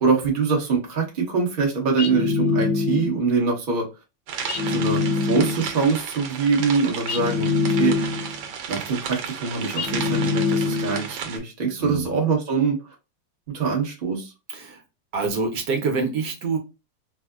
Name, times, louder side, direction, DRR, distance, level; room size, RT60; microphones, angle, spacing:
voice 1, 0.0-3.9 4.7-8.0 8.7-12.8 13.5-14.3, right 4 dB, 35° right, -1 dB, 0.8 m, -24 dB
sound 1, 2.0-3.3 4.5-5.8 7.1-8.4 9.8-11.1, left 4 dB, 65° left, 1.1 m, -24 dB
sound 2, 4.3-11.4, right 7 dB, 85° right, 1.4 m, -34 dB
voice 2, 14.5-14.8 15.1-16.6, right 4 dB, 70° right, 2 dB, 1.3 m, -26 dB
4.5 x 2.0 x 2.2 m, 0.27 s
omnidirectional pair, 2.0 m